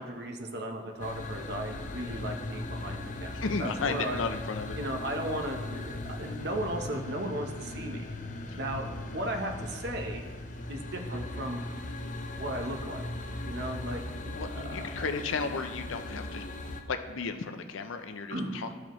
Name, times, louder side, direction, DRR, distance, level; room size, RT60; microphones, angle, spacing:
voice 1, 0.0-4.3 4.8-8.0 8.6-8.9 9.1-10.3 10.7-11.6 12.4-13.1 13.5-15.0 18.3-18.6, right 1 dB, 55° right, 3 dB, 0.9 m, -36 dB
sound 1, 1.0-16.8, left 2 dB, 40° left, 0.6 m, -38 dB
voice 2, 3.3-4.8 8.5-8.6 14.4-18.8, left 4 dB, 85° left, 8 dB, 0.6 m, -34 dB
13.5 x 4.9 x 3.0 m, 1.5 s
head